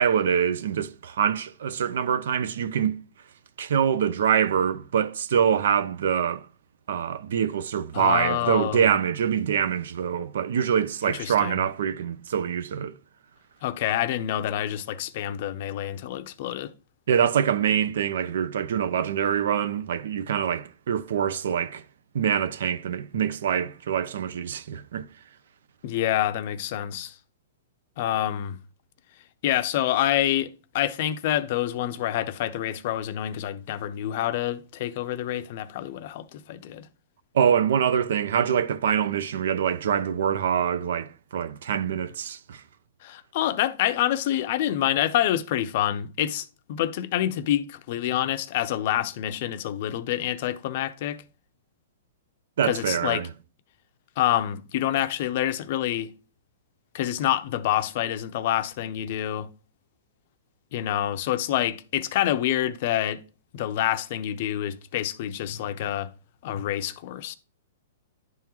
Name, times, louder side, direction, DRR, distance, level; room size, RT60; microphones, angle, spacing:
voice 1, 0.0-3.0 3.6-6.5 6.9-12.9 17.1-21.8 22.1-25.0 37.3-42.6 52.6-53.3, right 8 dB, 70° right, 0.6 m, -25 dB
voice 2, 7.9-8.9 11.0-11.6 13.6-16.7 25.8-27.2 28.0-28.6 29.4-36.9 43.0-51.2 52.6-53.3 54.2-56.1 56.9-59.5 60.7-63.2 63.5-66.1 66.4-67.3, left 12 dB, 50° left, 0.5 m, -27 dB
11.0 x 3.7 x 2.9 m
hypercardioid pair, 145°, 0 cm